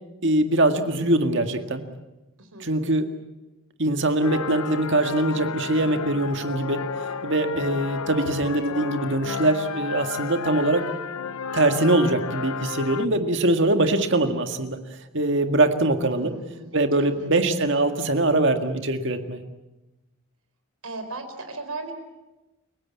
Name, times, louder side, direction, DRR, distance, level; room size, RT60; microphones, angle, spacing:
voice 1, 0.2-1.8 2.6-3.1 3.8-6.8 7.2-10.9 11.5-14.8 15.1-16.3 16.7-19.4, right 2 dB, 55° right, 6 dB, 1.9 m, -22 dB
voice 2, 2.4-3.0 16.2-17.3 20.8-21.9, right 2 dB, 80° right, 7 dB, 4.4 m, -38 dB
sound 1, 4.2-13.1, left 5 dB, 85° left, 0.7 m, -32 dB
29.5 x 17.0 x 8.6 m, 1.0 s
head